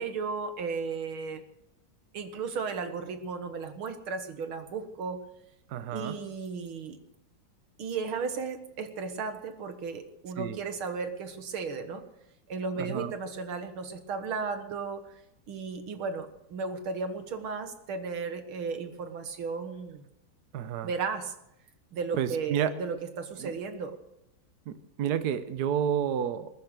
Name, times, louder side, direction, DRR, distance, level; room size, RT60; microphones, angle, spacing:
voice 1, 0.0-1.4 2.1-5.2 5.9-7.0 7.8-12.0 12.5-15.1 15.5-20.1 20.8-21.3 21.9-24.0, right 5 dB, 85° right, 8 dB, 2.4 m, -35 dB
voice 2, 5.7-6.1 10.4-10.6 12.8-13.1 20.5-20.9 22.2-22.7 23.4-23.5 24.7-26.5, right 9 dB, 60° right, 11 dB, 1.3 m, -30 dB
20.5 x 10.5 x 6.7 m, 0.83 s
omnidirectional pair, 2.2 m